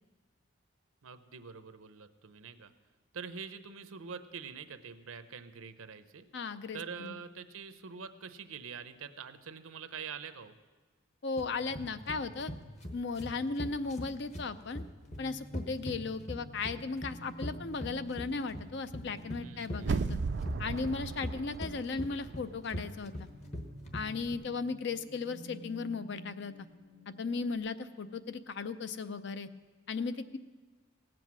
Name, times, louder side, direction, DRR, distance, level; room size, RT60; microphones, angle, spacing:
voice 1, 1.0-2.7 3.1-6.3 6.7-10.5 19.4-20.0, right 6 dB, 80° right, 11 dB, 0.7 m, -45 dB
voice 2, 6.3-7.1 11.2-12.5 12.9-14.8 15.2-20.2 20.6-23.3 23.9-26.5 27.2-29.5 29.9-30.4, left 4 dB, 55° left, 12 dB, 0.5 m, -36 dB
sound 1, 11.4-24.3, equal, 35° left, 1.0 m, -41 dB
sound 2, 15.0-27.6, right 1 dB, 75° left, 1.9 m, -53 dB
sound 3, 19.8-22.7 23.1-23.2, right 4 dB, 55° right, 0.3 m, -36 dB
17.0 x 7.7 x 6.1 m, 1.3 s
head